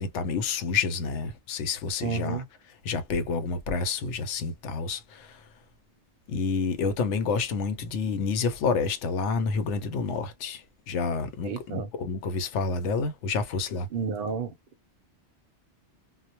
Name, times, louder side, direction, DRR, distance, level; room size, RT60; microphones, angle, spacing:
voice 1, 0.0-2.4 2.8-5.4 6.3-13.9, left 4 dB, 90° left, 0.9 m, -29 dB
voice 2, 2.0-2.5 11.4-11.9 13.9-14.5, right 5 dB, 60° right, 0.7 m, -31 dB
2.1 x 2.1 x 2.8 m
omnidirectional pair, 1.2 m